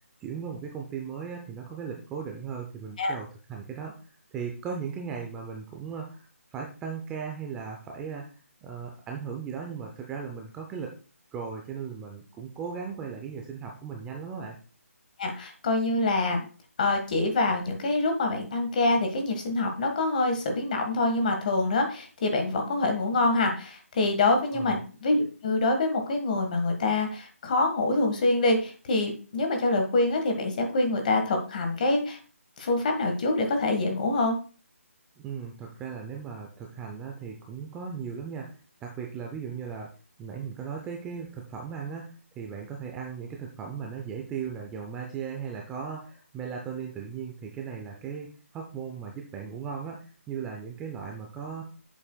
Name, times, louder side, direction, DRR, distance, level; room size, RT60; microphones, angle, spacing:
voice 1, 0.2-3.9 4.3-6.3 6.5-8.3 8.6-10.9 11.3-14.6 24.5-24.8 35.2-38.5 38.8-39.9 40.2-51.6, right 6 dB, 10° right, 1 dB, 0.5 m, -37 dB
voice 2, 15.2-16.4 16.8-32.2 32.6-34.4, left 2 dB, 35° left, 4 dB, 1.6 m, -25 dB
8.5 x 7.4 x 2.3 m, 0.37 s
hypercardioid pair, 165°, 8 cm